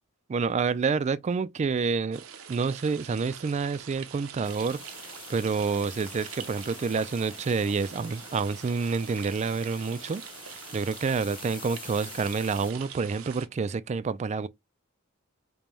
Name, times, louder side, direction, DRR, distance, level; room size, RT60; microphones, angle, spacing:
voice 1, 0.3-2.2 2.5-4.8 5.3-14.5, right 5 dB, 35° right, 0.3 m, -28 dB
sound 1, 2.1-13.5, right 8 dB, 80° right, 0.7 m, -44 dB
sound 2, 4.4-12.7, left 5 dB, 25° left, 0.9 m, -46 dB
5.2 x 2.2 x 3.0 m
head